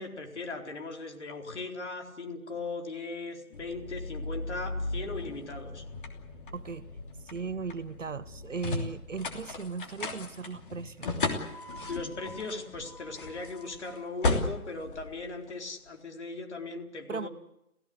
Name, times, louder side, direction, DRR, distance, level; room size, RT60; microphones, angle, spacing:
voice 1, 0.0-5.8 11.9-17.3, left 3 dB, 50° left, 3 dB, 4.3 m, -38 dB
sound 1, 3.5-15.9, left 3 dB, 35° left, 3.1 m, -36 dB
voice 2, 6.5-6.9 7.2-11.1 17.1-17.3, right 5 dB, 60° right, 15 dB, 1.1 m, -37 dB
29.0 x 16.0 x 8.0 m, 0.83 s
figure-of-eight pair, 155°, 43 cm